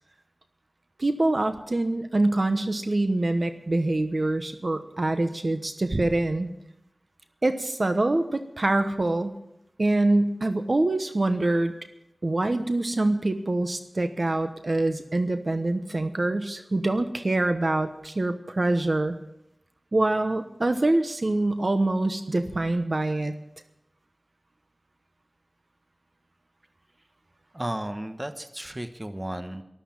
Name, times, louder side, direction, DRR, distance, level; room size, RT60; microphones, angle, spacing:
voice 1, 1.0-6.5 7.4-9.3 9.8-11.7 12.2-19.2 19.9-23.3, right 2 dB, 55° right, 8 dB, 1.1 m, -25 dB
voice 2, 27.5-29.6, right 1 dB, 25° right, 8 dB, 1.2 m, -33 dB
13.5 x 12.5 x 7.2 m, 0.81 s
wide cardioid pair, 65°, 0 cm